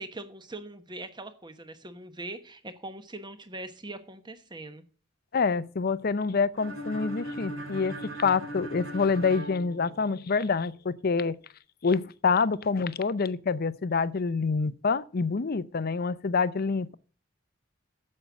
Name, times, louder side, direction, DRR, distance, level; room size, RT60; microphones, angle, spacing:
voice 1, 0.0-4.8, right 2 dB, 25° right, 1.1 m, -41 dB
voice 2, 5.3-11.4 11.8-16.9, left 4 dB, 50° left, 0.6 m, -27 dB
sound 1, 6.6-10.5, equal, 80° right, 3.1 m, -39 dB
8.9 x 7.6 x 7.1 m
head